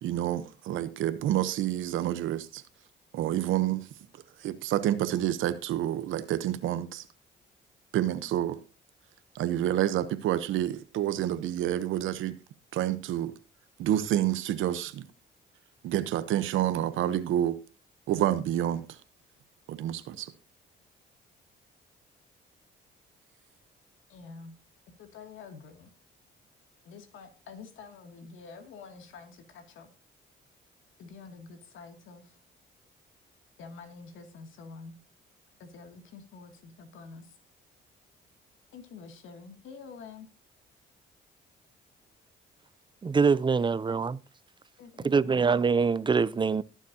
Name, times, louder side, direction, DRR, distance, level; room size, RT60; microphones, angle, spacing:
voice 1, 0.0-2.6 3.1-3.9 4.4-7.0 7.9-8.6 9.3-12.4 12.7-13.3 13.8-15.1 15.8-17.6 18.1-18.8 19.7-20.3, right 12 dB, 85° right, 1.0 m, -28 dB
voice 2, 24.1-24.5 24.9-25.9 26.8-29.9 31.0-32.4 33.6-35.0 35.6-37.4 38.7-40.3 44.8-45.6, left 4 dB, 80° left, 2.5 m, -47 dB
voice 3, 43.0-44.2 45.0-46.6, right 5 dB, 25° right, 0.5 m, -24 dB
20.5 x 7.3 x 2.8 m
cardioid pair, 90°, 20 cm